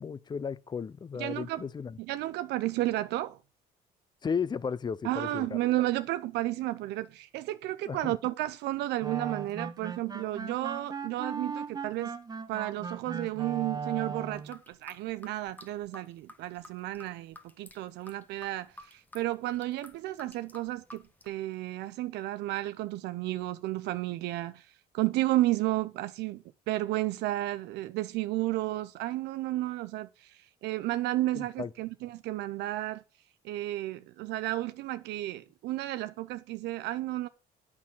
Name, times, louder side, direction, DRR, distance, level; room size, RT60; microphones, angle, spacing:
voice 1, 0.0-2.0 4.2-5.6 7.9-8.2 31.3-31.7, left 6 dB, 25° left, 0.6 m, -34 dB
voice 2, 1.2-1.6 2.0-3.4 5.0-12.1 12.5-33.0 33.4-37.3, right 16 dB, 85° right, 0.6 m, -32 dB
sound 1, 9.0-14.5, right 5 dB, 25° right, 1.2 m, -38 dB
sound 2, 14.3-21.3, left 1 dB, 10° left, 1.3 m, -52 dB
8.6 x 6.1 x 7.4 m
cardioid pair, 110°, 17 cm